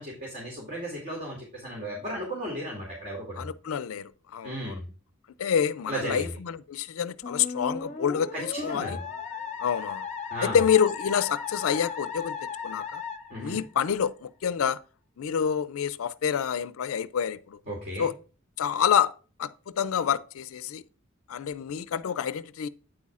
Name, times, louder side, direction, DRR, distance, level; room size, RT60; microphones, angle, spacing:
voice 1, 0.0-3.5 4.4-4.9 5.9-6.3 8.3-9.0 10.3-10.6 13.3-13.6 17.7-18.1, equal, 40° right, 2.5 m, -35 dB
voice 2, 3.4-4.8 5.4-9.0 9.6-10.1 10.4-13.0 13.4-14.8 15.2-17.6 18.0-18.1 18.6-19.1 19.4-20.8 21.3-22.7, left 8 dB, 75° left, 0.4 m, -27 dB
Musical instrument, 7.2-14.1, left 5 dB, 35° left, 0.8 m, -36 dB
8.9 x 8.2 x 2.4 m
head